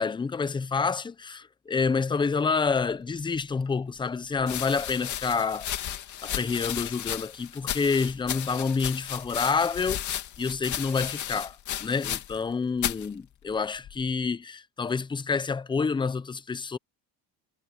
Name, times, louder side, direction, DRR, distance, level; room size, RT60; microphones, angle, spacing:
voice 1, 0.0-5.7 6.2-10.0 10.4-11.6 11.8-16.8, left 5 dB, 10° left, 0.5 m, -28 dB
sound 1, 3.3-3.4 4.4-12.5 12.8-13.1 13.8-14.3, left 11 dB, 45° left, 2.4 m, -34 dB
cardioid pair, 160°, 40 cm